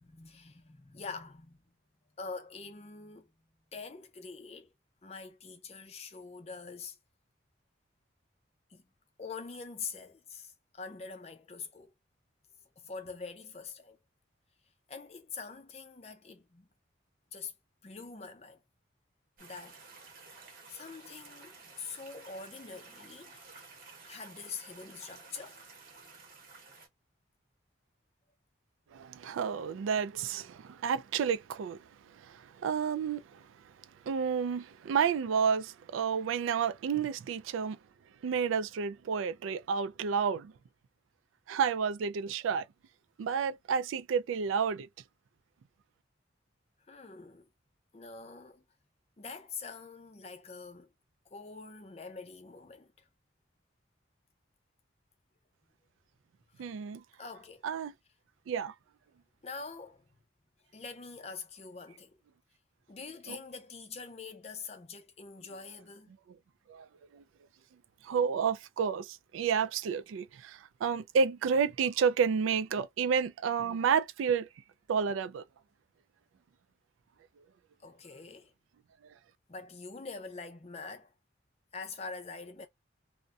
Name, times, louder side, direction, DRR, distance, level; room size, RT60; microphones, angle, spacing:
voice 1, 0.0-1.6 2.2-3.3 3.7-4.7 5.0-7.0 8.7-8.8 9.2-11.9 12.8-14.0 14.9-16.7 17.3-17.5 17.8-18.6 19.4-19.8 20.7-23.5 24.1-25.6 46.9-47.5 47.9-48.6 49.2-50.9 51.3-52.9 56.6-56.7 57.2-57.6 59.4-60.0 60.7-62.2 62.9-66.1 77.8-78.5 79.5-81.1 81.7-82.7, left 4 dB, 35° left, 0.5 m, -44 dB
sound 1, 19.4-26.9, right 3 dB, 45° right, 0.9 m, -53 dB
voice 2, 28.9-33.4 34.1-37.8 38.2-40.5 41.5-42.7 43.2-44.9 56.6-57.0 57.6-57.9 58.5-58.7 63.3-63.4 66.7-66.9 67.1-67.2 68.0-74.5 74.9-75.4, right 6 dB, 90° right, 0.3 m, -30 dB
2.6 x 2.1 x 2.4 m
head